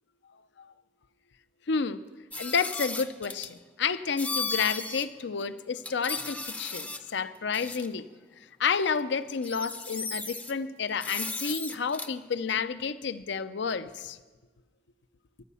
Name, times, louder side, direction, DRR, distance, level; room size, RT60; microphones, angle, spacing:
voice 1, 1.7-2.0 2.4-8.0 8.6-14.2, left 5 dB, 70° left, 14 dB, 0.6 m, -30 dB
sound 1, 2.3-3.5 4.2-5.1 5.4-5.5 5.8-7.1 7.5-7.9 8.9-9.0 9.3-10.5 11.0-12.1, left 3 dB, 10° left, 0.5 m, -35 dB
16.5 x 11.0 x 5.6 m, 1.3 s
head